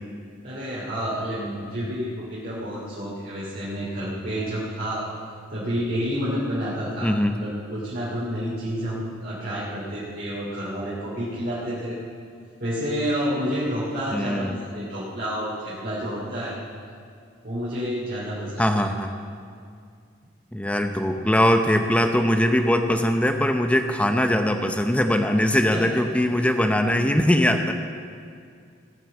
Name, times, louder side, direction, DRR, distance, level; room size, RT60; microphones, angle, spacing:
voice 1, 0.4-5.0 5.5-12.0 12.6-16.6 17.4-18.9 25.7-25.9 27.4-27.5, equal, 50° right, -8 dB, 2.7 m, -29 dB
voice 2, 7.0-7.4 14.1-14.5 18.6-19.1 20.5-27.7, left 1 dB, 5° left, 6 dB, 0.7 m, -21 dB
18.0 x 6.3 x 7.5 m, 2.3 s
head